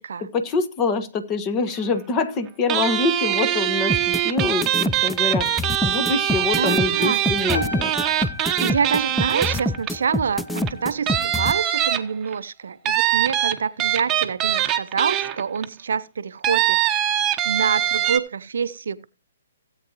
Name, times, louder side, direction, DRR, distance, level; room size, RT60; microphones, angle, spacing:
voice 1, 0.3-4.0 4.2-7.9, left 4 dB, 25° left, 1.5 m, -25 dB
sound 1, 2.7-10.1 10.6-10.7 11.1-12.3 12.9-15.7 16.4-18.2, right 12 dB, 25° right, 1.1 m, -22 dB
sound 2, 3.9-11.5, left 1 dB, 5° left, 0.5 m, -25 dB
voice 2, 6.5-7.2 8.6-19.0, right 6 dB, 65° right, 0.7 m, -26 dB
sound 3, 7.5-12.1 12.4-12.8, left 1 dB, 75° left, 5.5 m, -37 dB
17.0 x 8.4 x 3.0 m
figure-of-eight pair, 125°, 0 cm